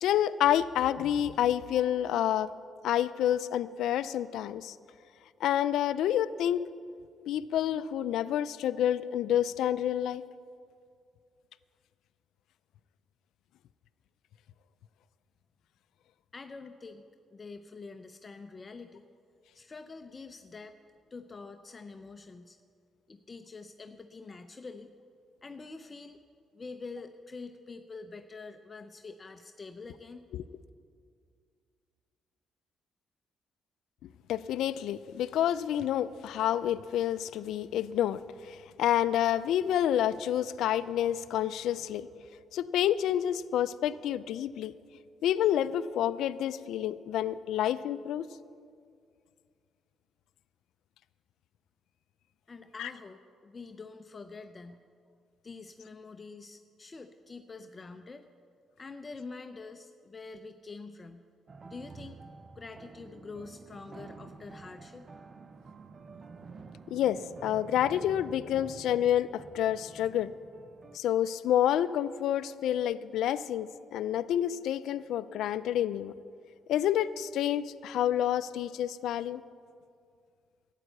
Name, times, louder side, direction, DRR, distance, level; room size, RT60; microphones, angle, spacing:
voice 1, 0.0-2.5 2.8-4.8 5.4-6.6 7.3-10.2 30.3-30.4 34.3-42.1 42.5-44.7 45.2-48.3 52.8-52.9 66.9-70.3 70.9-76.1 76.7-79.4, left 11 dB, 80° left, 15 dB, 0.4 m, -28 dB
voice 2, 16.3-17.0 17.3-19.0 19.5-20.8 21.1-22.6 23.1-24.9 25.4-26.2 26.5-30.2 52.5-54.8 55.4-58.3 58.8-61.3 61.7-62.2 62.6-65.1, left 4 dB, 30° left, 8 dB, 0.6 m, -46 dB
sound 1, 61.5-71.0, right 4 dB, 40° right, 0.6 m, -49 dB
12.5 x 9.1 x 7.9 m, 2.3 s
cardioid pair, 90°, 0 cm